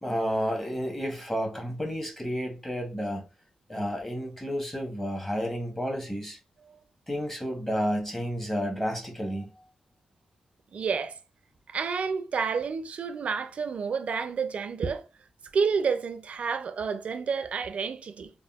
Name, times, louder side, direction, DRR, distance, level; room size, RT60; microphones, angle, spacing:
voice 1, 0.0-3.2 3.7-6.4 7.1-9.5, equal, 15° left, 0.9 m, -31 dB
voice 2, 10.7-11.2 11.7-15.0 15.5-18.3, right 5 dB, 65° right, 0.4 m, -29 dB
3.5 x 2.0 x 2.3 m
cardioid pair, 75°, 2 cm